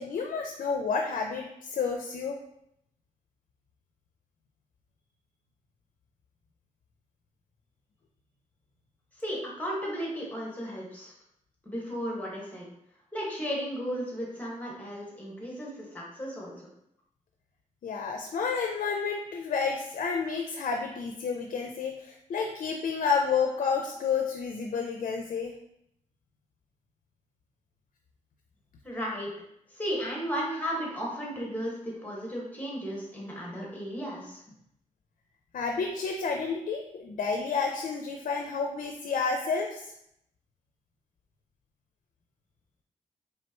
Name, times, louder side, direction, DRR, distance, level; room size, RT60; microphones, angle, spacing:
voice 1, 0.0-2.4 17.8-25.6 35.5-39.9, left 5 dB, 70° left, 3 dB, 0.5 m, -30 dB
voice 2, 9.2-11.1 11.6-12.7 13.1-16.6 28.8-29.3 29.7-34.4, equal, 10° left, -4 dB, 1.6 m, -34 dB
4.3 x 3.4 x 3.0 m, 0.76 s
cardioid pair, 85°, 14 cm